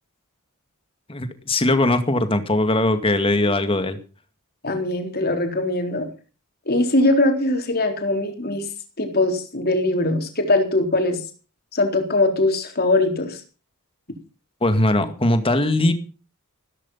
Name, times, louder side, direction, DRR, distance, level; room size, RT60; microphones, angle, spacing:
voice 1, 1.1-4.0 14.6-15.9, left 1 dB, 25° left, 9 dB, 2.1 m, -20 dB
voice 2, 4.6-6.1 6.7-8.6 9.0-11.2 11.7-13.4, left 2 dB, 45° left, 5 dB, 3.9 m, -21 dB
15.5 x 13.5 x 5.6 m, 0.36 s
head